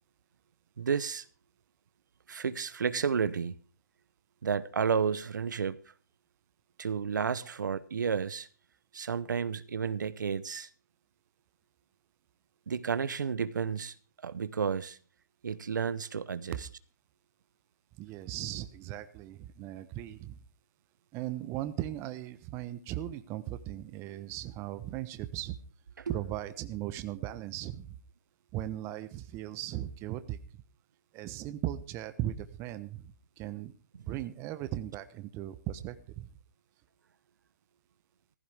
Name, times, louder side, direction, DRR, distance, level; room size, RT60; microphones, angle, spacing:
voice 1, 0.8-1.2 2.3-3.5 4.4-5.8 6.8-8.5 8.9-10.7 12.7-13.9 14.2-15.0 15.4-16.7 26.0-26.1, right 6 dB, 80° right, 0.9 m, -31 dB
voice 2, 18.0-20.4 21.1-25.6 26.1-28.0 28.5-30.4 31.1-33.7 34.1-36.3, right 13 dB, 25° right, 1.0 m, -38 dB
15.5 x 15.0 x 3.6 m
hypercardioid pair, 140°, 10 cm